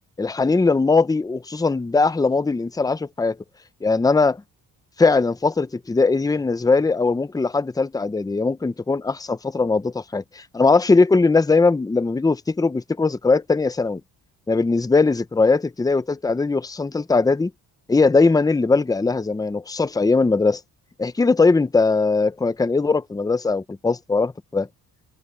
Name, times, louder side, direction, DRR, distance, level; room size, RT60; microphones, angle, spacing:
voice 1, 0.2-3.4 3.8-4.4 5.0-14.0 14.5-17.5 17.9-20.6 21.0-24.7, left 3 dB, 10° left, 0.6 m, -20 dB
open air
cardioid pair, 130°, 40 cm